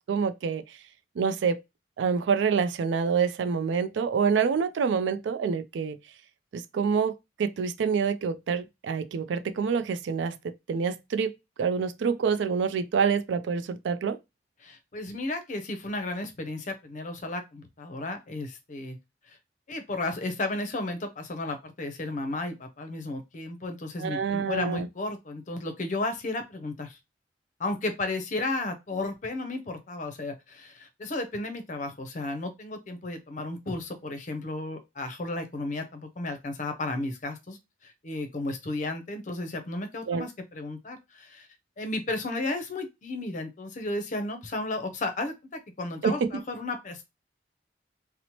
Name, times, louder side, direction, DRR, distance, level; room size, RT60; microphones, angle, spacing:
voice 1, 0.1-0.6 1.2-1.6 2.0-6.0 6.5-10.4 10.7-11.3 11.6-14.2 24.0-24.9 40.1-40.3 46.0-46.4, right 6 dB, 85° right, 0.3 m, -27 dB
voice 2, 14.6-19.0 19.3-19.4 19.7-27.0 27.6-37.6 37.8-41.5 41.8-47.0, left 2 dB, 45° left, 0.5 m, -33 dB
2.8 x 2.0 x 2.8 m
head